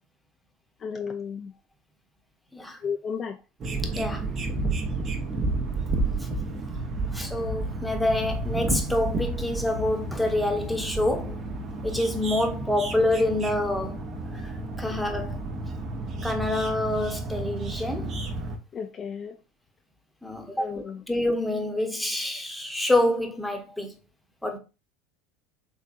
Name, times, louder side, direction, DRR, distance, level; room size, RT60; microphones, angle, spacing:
voice 1, 0.8-1.5 2.8-3.4 4.6-4.7 14.9-15.0 18.7-19.4 20.6-21.0, left 6 dB, 35° left, 0.3 m, -33 dB
sound 1, 3.6-18.6, right 2 dB, 40° right, 0.8 m, -31 dB
voice 2, 7.1-11.4 11.8-14.0 14.3-14.5 14.8-15.4 16.2-18.2 20.2-23.9 24.4-24.6, left 1 dB, 5° left, 0.9 m, -27 dB
3.7 x 3.2 x 2.5 m
hypercardioid pair, 80°, 0 cm